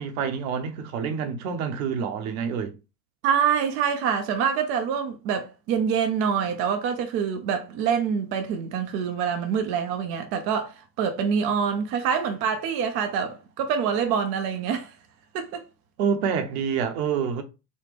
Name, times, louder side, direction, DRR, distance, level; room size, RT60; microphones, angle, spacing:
voice 1, 0.0-2.8 16.0-17.4, right 6 dB, 55° right, 0.9 m, -27 dB
voice 2, 3.2-14.9 15.3-15.6, right 7 dB, 30° right, 0.4 m, -26 dB
4.1 x 2.2 x 3.2 m
hypercardioid pair, 95°, 49 cm